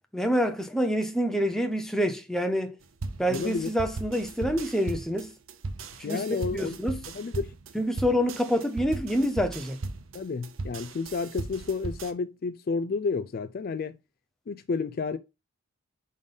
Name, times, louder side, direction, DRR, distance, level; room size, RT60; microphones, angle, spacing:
voice 1, 0.1-2.8 3.2-5.3 6.0-7.0 7.7-9.8, equal, ahead, 0.7 m, -27 dB
sound 1, 3.0-12.1, right 3 dB, 65° right, 0.7 m, -37 dB
voice 2, 3.3-3.7 6.0-6.8 7.1-7.5 10.1-14.0 14.5-15.2, left 4 dB, 45° left, 0.3 m, -31 dB
5.3 x 3.9 x 5.3 m
head